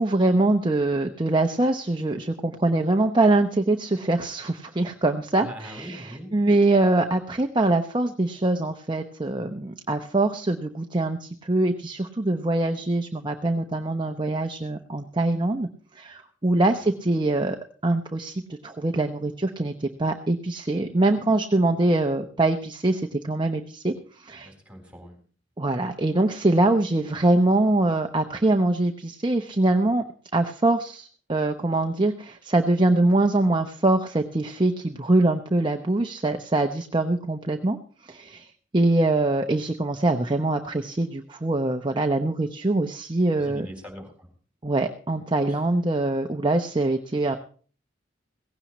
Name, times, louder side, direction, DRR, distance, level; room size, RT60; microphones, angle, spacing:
voice 1, 0.0-6.0 6.3-15.7 15.9-17.6 17.8-24.5 25.6-30.0 30.3-37.8 38.0-43.7 44.6-47.4, right 2 dB, 25° right, 5 dB, 0.8 m, -23 dB
voice 2, 5.4-6.3 16.8-17.0 24.4-25.2 43.4-44.3 45.5-45.6, equal, 5° right, 3 dB, 3.9 m, -41 dB
17.5 x 16.0 x 3.1 m, 0.42 s
head